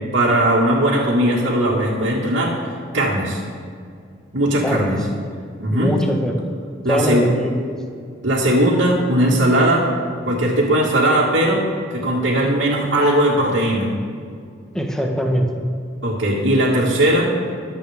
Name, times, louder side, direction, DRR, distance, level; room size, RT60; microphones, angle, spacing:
voice 1, 0.1-2.6 2.9-3.4 4.3-5.0 5.6-5.9 6.8-7.3 8.2-9.9 10.2-11.7 11.9-13.9 16.0-17.3, right 1 dB, 70° right, -8 dB, 2.2 m, -18 dB
voice 2, 4.6-5.2 5.7-6.5 6.9-7.5 14.7-15.5, equal, 5° left, 1 dB, 1.3 m, -22 dB
23.5 x 8.3 x 3.6 m, 2.3 s
head